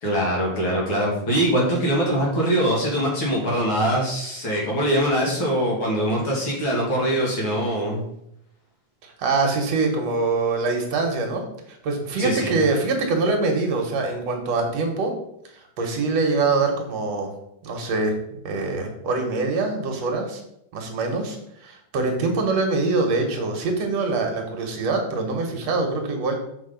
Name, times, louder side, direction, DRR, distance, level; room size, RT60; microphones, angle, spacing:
voice 1, 0.0-8.0 12.2-12.5, equal, 40° left, -3 dB, 2.9 m, -23 dB
voice 2, 9.0-11.4 11.7-15.1 15.5-17.3 17.6-18.1 18.4-20.4 20.7-26.4, right 3 dB, 60° right, 2 dB, 2.1 m, -24 dB
6.6 x 6.2 x 5.1 m, 0.77 s
omnidirectional pair, 3.7 m